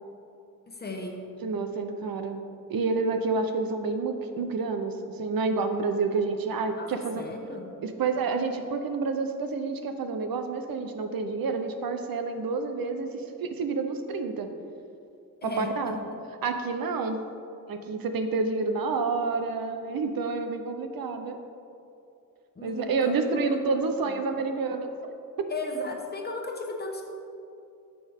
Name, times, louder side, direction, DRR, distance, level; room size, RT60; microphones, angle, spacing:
voice 1, 0.7-1.3 6.8-7.8 15.4-16.0 22.5-23.6 24.0-24.1 25.5-27.0, left 2 dB, 30° left, 2 dB, 1.2 m, -36 dB
voice 2, 1.4-2.4 2.7-7.2 7.8-14.5 15.4-16.0 16.4-17.2 17.7-21.4 22.6-24.9, right 4 dB, 80° right, 7 dB, 0.8 m, -29 dB
10.5 x 7.0 x 3.6 m, 2.6 s
wide cardioid pair, 115°, 34 cm